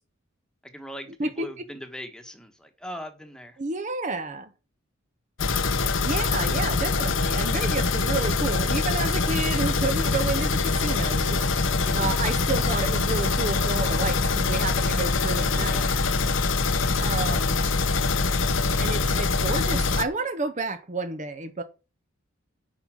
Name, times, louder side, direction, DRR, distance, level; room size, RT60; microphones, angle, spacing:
voice 1, 0.6-3.6 11.8-12.2 15.5-16.0, equal, 5° left, 1.3 m, -40 dB
voice 2, 1.2-1.6 3.6-4.5 6.0-15.8 17.0-17.6 18.8-21.6, right 3 dB, 35° right, 0.8 m, -30 dB
sound 1, 5.4-20.1, left 3 dB, 60° left, 0.9 m, -24 dB
9.6 x 5.6 x 6.2 m
head